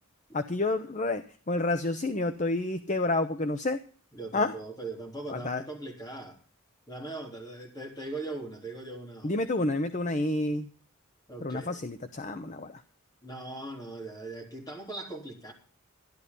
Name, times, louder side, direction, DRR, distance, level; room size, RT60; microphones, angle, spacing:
voice 1, 0.3-3.8 4.3-4.5 5.3-5.6 9.2-10.7 11.4-12.8, left 2 dB, 35° left, 10 dB, 0.7 m, -29 dB
voice 2, 4.1-6.4 6.9-9.4 11.3-11.8 13.2-15.5, right 2 dB, 15° left, 0 dB, 3.7 m, -40 dB
13.0 x 11.5 x 5.4 m, 0.42 s
head